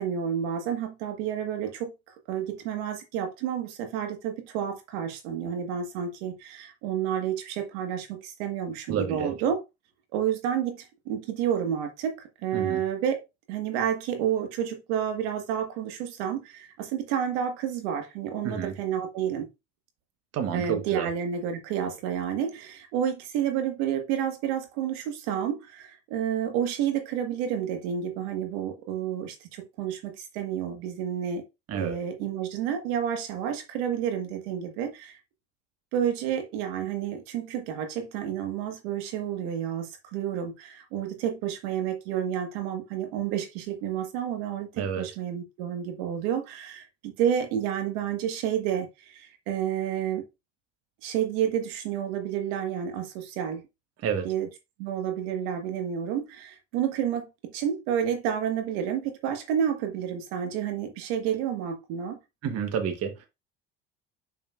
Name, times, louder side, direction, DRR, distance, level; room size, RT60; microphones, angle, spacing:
voice 1, 0.0-1.9 2.3-9.6 10.1-13.2 13.5-19.5 20.5-31.4 31.7-35.2 35.9-50.2 51.0-53.6 54.2-54.5 54.8-62.2, right 9 dB, 75° right, 1.6 m, -30 dB
voice 2, 8.9-9.3 12.5-12.8 18.4-18.7 20.3-21.1 31.7-32.0 44.8-45.1 54.0-54.3 62.4-63.3, right 7 dB, 50° right, 1.3 m, -29 dB
6.6 x 5.9 x 2.5 m
supercardioid pair, 85°, 33 cm